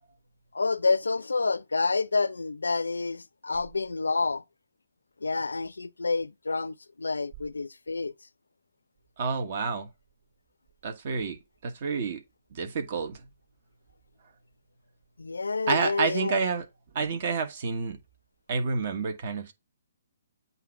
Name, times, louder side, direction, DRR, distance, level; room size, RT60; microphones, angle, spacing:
voice 1, 0.5-4.4 5.2-8.1 15.2-16.4, left 3 dB, 80° left, 0.4 m, -28 dB
voice 2, 9.2-9.9 10.8-11.4 11.6-12.2 12.5-13.2 15.7-16.7 16.9-18.0 18.5-19.5, right 5 dB, 50° right, 1.3 m, -29 dB
8.1 x 2.8 x 5.7 m
figure-of-eight pair, 130°, 0 cm